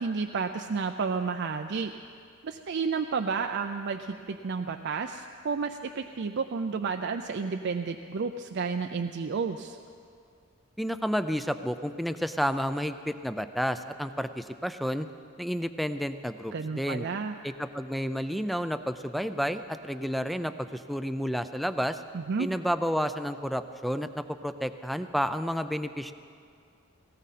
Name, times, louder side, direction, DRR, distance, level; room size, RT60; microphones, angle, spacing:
voice 1, 0.0-1.9 2.4-9.8 16.5-17.4 22.1-22.5, right 5 dB, 55° right, 6 dB, 0.5 m, -31 dB
voice 2, 10.8-15.1 15.4-17.1 17.4-22.0 22.4-26.1, equal, ahead, 10 dB, 0.4 m, -31 dB
18.0 x 17.5 x 4.2 m, 2.4 s
head